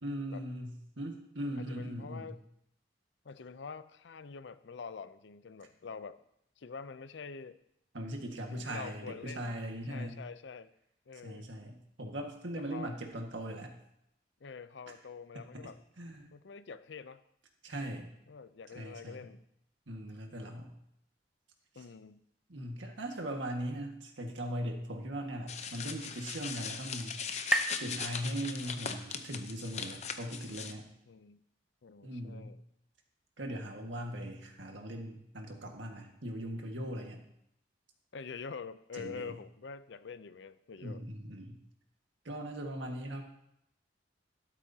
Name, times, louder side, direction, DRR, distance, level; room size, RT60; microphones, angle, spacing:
voice 1, 0.0-2.3 7.9-10.2 11.2-13.8 15.3-15.7 16.0-16.3 17.6-18.1 18.7-19.3 19.9-20.7 22.5-27.2 27.8-30.9 32.0-32.5 33.4-37.2 39.0-39.3 40.8-41.6 42.2-43.2, right 1 dB, 90° right, 2 dB, 1.7 m, -39 dB
voice 2, 1.6-2.4 3.2-6.2 6.6-7.6 8.5-9.5 9.8-10.7 11.1-11.5 12.5-13.0 14.4-15.8 16.3-17.2 18.3-19.4 21.7-22.2 31.1-31.4 31.8-32.6 38.1-41.1, left 5 dB, 75° left, 14 dB, 0.5 m, -46 dB
sound 1, 25.2-28.9, right 1 dB, 5° right, 0.5 m, -38 dB
sound 2, 25.5-30.7, left 6 dB, 35° left, 0.7 m, -40 dB
12.5 x 12.5 x 2.8 m, 0.77 s
head